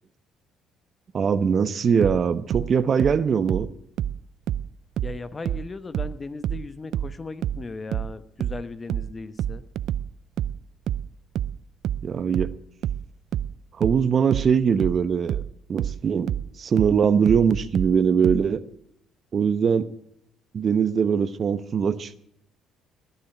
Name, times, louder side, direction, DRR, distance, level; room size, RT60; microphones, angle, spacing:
voice 1, 1.1-3.7 12.0-12.5 13.8-15.4 15.7-16.3 16.6-18.6 19.3-19.9 20.5-22.2, right 6 dB, 45° right, 14 dB, 0.9 m, -21 dB
sound 1, 2.0-5.2 5.4-18.5, right 10 dB, 65° right, 0.5 m, -28 dB
voice 2, 5.0-9.6, left 3 dB, 30° left, 13 dB, 1.2 m, -37 dB
19.5 x 6.9 x 9.2 m, 0.74 s
supercardioid pair, 75°, 0 cm